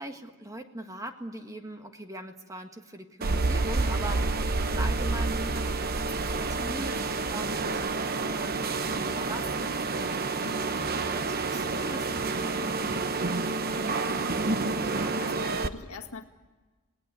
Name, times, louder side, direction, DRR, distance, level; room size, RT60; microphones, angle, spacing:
voice 1, 0.0-10.7 11.0-13.6, right 1 dB, 15° right, 5 dB, 1.6 m, -41 dB
sound 1, 3.2-15.7, right 3 dB, 45° right, 1.0 m, -30 dB
sound 2, 3.2-8.3, right 2 dB, 70° right, 0.8 m, -30 dB
voice 2, 10.4-11.0 14.9-16.2, left 3 dB, 70° left, 6 dB, 1.8 m, -42 dB
27.5 x 19.5 x 8.3 m, 1.3 s
head